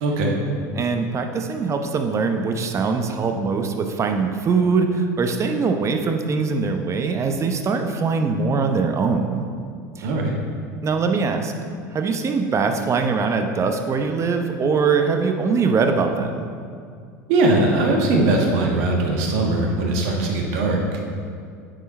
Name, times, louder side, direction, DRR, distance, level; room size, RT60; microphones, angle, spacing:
voice 1, 0.0-0.3 10.0-10.3 17.3-20.8, right 2 dB, 70° right, 0 dB, 1.4 m, -20 dB
voice 2, 0.7-9.5 10.0-10.1 10.8-11.5 11.9-16.5, right 4 dB, 35° right, 5 dB, 0.8 m, -22 dB
9.1 x 4.6 x 4.2 m, 2.3 s
hypercardioid pair, 85°, 9 cm